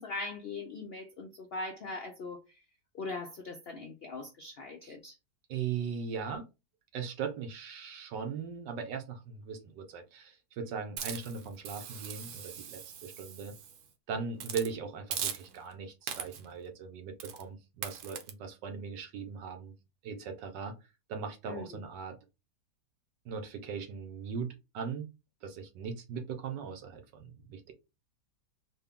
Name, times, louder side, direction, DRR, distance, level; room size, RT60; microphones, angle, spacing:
voice 1, 0.0-2.6 2.9-5.2 21.5-21.8, left 3 dB, 85° left, 0.5 m, -41 dB
voice 2, 5.5-6.5 6.9-13.5 14.1-19.7 20.0-20.8 21.1-22.2 23.2-25.1 25.4-27.7, right 6 dB, 85° right, 1.5 m, -39 dB
Hiss, 11.0-13.8 14.4-14.7 15.1-15.7 16.1-16.5 17.2-17.4 17.8-18.3, right 8 dB, 70° right, 1.1 m, -40 dB
4.1 x 2.2 x 3.5 m
omnidirectional pair, 1.8 m